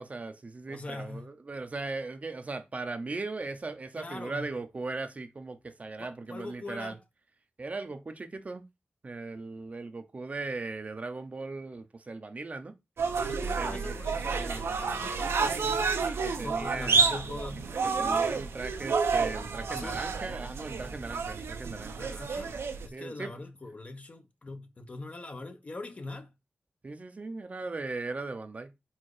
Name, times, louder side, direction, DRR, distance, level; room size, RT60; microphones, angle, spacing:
voice 1, 0.0-7.0 7.6-8.6 9.0-12.7 13.6-14.0 14.4-14.6 16.2-17.1 17.8-22.2 22.9-23.3 26.8-28.7, right 3 dB, 35° right, 0.8 m, -38 dB
voice 2, 0.7-1.3 4.0-4.5 6.0-7.0 13.3-16.0 16.4-17.7 19.7-20.1 22.0-22.6 22.8-26.3, left 2 dB, 35° left, 0.9 m, -42 dB
sound 1, 13.0-22.9, right 5 dB, 85° right, 1.0 m, -30 dB
4.8 x 4.4 x 4.8 m
wide cardioid pair, 150°, 4 cm